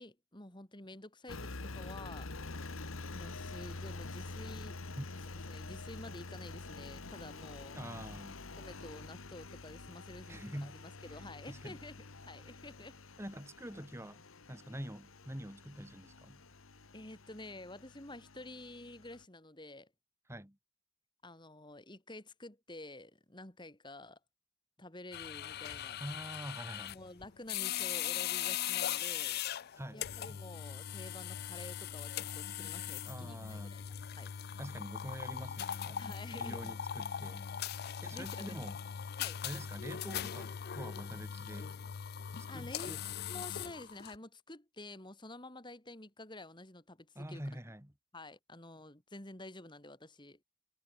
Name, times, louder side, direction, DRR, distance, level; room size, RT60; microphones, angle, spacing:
voice 1, 0.0-2.3 3.1-4.8 5.5-7.9 8.6-13.0 16.9-19.9 21.2-24.2 24.8-26.0 26.9-33.8 34.1-34.3 36.0-36.8 38.1-38.7 39.2-39.4 42.5-43.0 43.3-47.4 48.1-50.4, left 2 dB, 20° left, 2.8 m, -50 dB
Engine, 1.3-19.2, left 3 dB, 75° left, 1.5 m, -47 dB
voice 2, 7.7-8.4 10.3-10.8 11.5-11.8 13.2-14.2 14.5-16.4 20.3-20.6 26.0-26.9 29.7-30.4 33.0-33.8 34.6-36.0 36.3-37.5 38.0-38.8 39.4-41.8 42.5-43.0 47.1-47.9, equal, 15° right, 2.5 m, -45 dB
sound 1, 25.1-44.2, left 10 dB, 50° left, 0.4 m, -40 dB
head